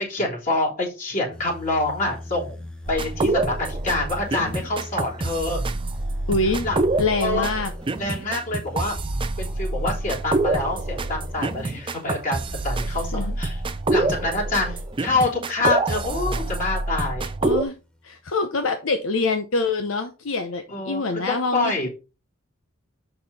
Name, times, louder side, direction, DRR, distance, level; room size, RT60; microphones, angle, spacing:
voice 1, 0.1-5.6 6.6-6.8 7.2-7.5 8.0-9.0 9.4-13.6 13.9-14.7 15.0-17.3 20.7-21.9, left 2 dB, 40° left, -3 dB, 3.5 m, -26 dB
sound 1, 1.3-16.5 17.1-18.1, left 1 dB, 5° left, 0.9 m, -42 dB
sound 2, 2.9-17.6, right 2 dB, 25° right, 0.5 m, -26 dB
voice 2, 6.3-6.7 7.0-7.7 13.1-13.4 17.4-17.7 18.0-21.7, left 3 dB, 75° left, 7 dB, 0.8 m, -25 dB
6.9 x 5.8 x 4.2 m, 0.30 s
head